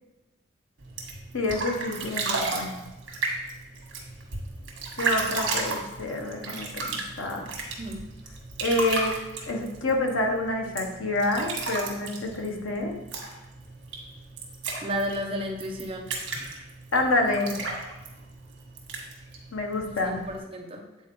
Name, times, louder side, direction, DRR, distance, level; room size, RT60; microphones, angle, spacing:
sound 1, 0.8-20.4, right 3 dB, 75° right, 1.4 m, -34 dB
voice 1, 1.3-2.7 5.0-7.5 8.6-9.2 9.5-12.9 16.9-17.6 19.5-20.2, left 2 dB, 85° left, 2 dB, 0.9 m, -27 dB
voice 2, 14.8-16.1 20.0-20.8, equal, 30° right, 0 dB, 0.7 m, -32 dB
8.2 x 4.2 x 3.0 m, 1.0 s
head